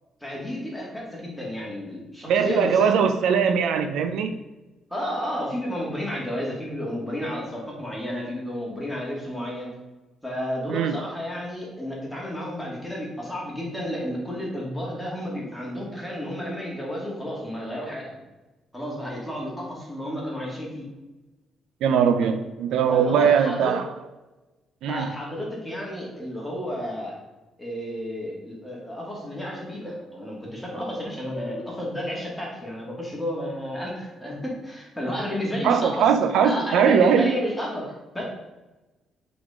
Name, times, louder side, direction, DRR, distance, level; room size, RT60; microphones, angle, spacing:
voice 1, 0.2-3.0 4.9-9.7 10.2-18.2 18.7-20.9 22.2-22.3 22.9-23.7 24.9-27.2 27.6-36.1 36.4-38.2, equal, 5° left, -4 dB, 1.8 m, -32 dB
voice 2, 2.3-4.4 10.7-11.0 21.8-23.9 24.8-25.1 35.6-37.3, right 7 dB, 75° right, 7 dB, 0.5 m, -20 dB
7.8 x 4.2 x 3.6 m, 1.1 s
cardioid pair, 160°, 0 cm